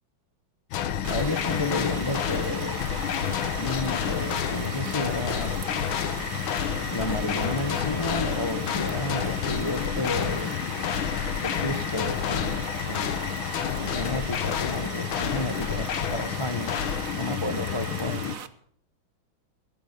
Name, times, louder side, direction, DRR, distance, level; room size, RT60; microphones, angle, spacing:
sound 1, 0.7-18.4, left 9 dB, 75° left, 1.8 m, -29 dB
sound 2, 1.0-18.5, right 8 dB, 50° right, 1.2 m, -39 dB
voice 1, 1.1-2.8 3.6-5.6 6.9-10.5 11.4-13.2 13.7-16.8 17.1-18.2, left 2 dB, 30° left, 10 dB, 0.5 m, -31 dB
sound 3, 2.8-15.2, right 3 dB, 75° right, 4.9 m, -53 dB
16.5 x 13.5 x 5.4 m, 0.65 s
omnidirectional pair, 2.2 m